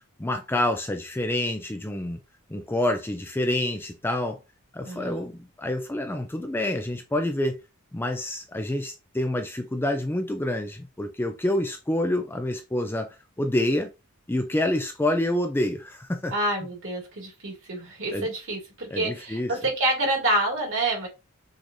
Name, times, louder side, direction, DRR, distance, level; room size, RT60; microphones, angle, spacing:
voice 1, 0.2-2.2 2.5-4.4 4.7-7.6 7.9-13.9 14.3-16.3 18.1-18.3 18.9-19.5, left 1 dB, 10° left, 0.5 m, -27 dB
voice 2, 4.8-5.2 16.3-21.1, right 1 dB, 60° right, 2.3 m, -27 dB
6.2 x 3.2 x 2.6 m
head